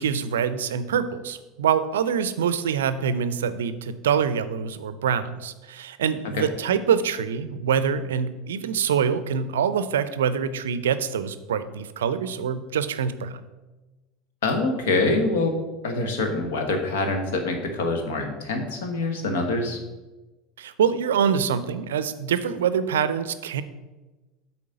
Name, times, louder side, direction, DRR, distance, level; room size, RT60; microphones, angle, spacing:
voice 1, 0.0-13.4 20.6-23.6, right 7 dB, 70° right, 13 dB, 0.5 m, -25 dB
voice 2, 14.4-15.5 15.8-19.8, left 2 dB, 65° left, 4 dB, 1.3 m, -25 dB
8.4 x 4.3 x 6.6 m, 1.1 s
figure-of-eight pair, 70°, 0 cm